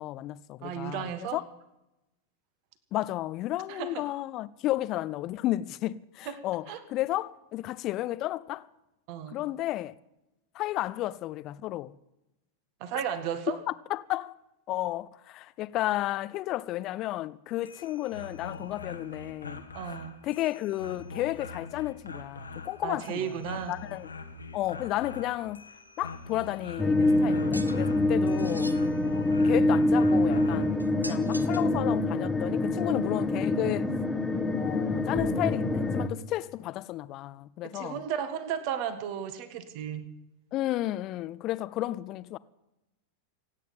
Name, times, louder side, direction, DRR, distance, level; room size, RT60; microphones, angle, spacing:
voice 1, 0.0-1.4 2.9-8.7 9.3-9.9 10.5-11.9 13.5-13.6 13.9-14.3 14.7-19.6 20.2-23.3 23.7-24.1 24.5-25.7 26.0-28.7 29.4-33.9 34.5-38.0 40.5-42.4, left 15 dB, 35° left, 0.6 m, -32 dB
voice 2, 0.6-1.4 3.7-4.0 6.2-6.8 9.1-9.4 12.8-13.6 19.7-20.1 22.8-23.7 37.7-40.1, right 9 dB, 45° right, 1.7 m, -34 dB
sound 1, 17.5-30.8, left 3 dB, 75° left, 1.3 m, -44 dB
sound 2, 26.8-36.1, left 2 dB, 5° left, 1.2 m, -25 dB
sound 3, 27.5-27.8 28.4-28.8 30.8-31.7, equal, 90° right, 0.9 m, -41 dB
26.0 x 9.3 x 5.5 m
figure-of-eight pair, 90°, 0 cm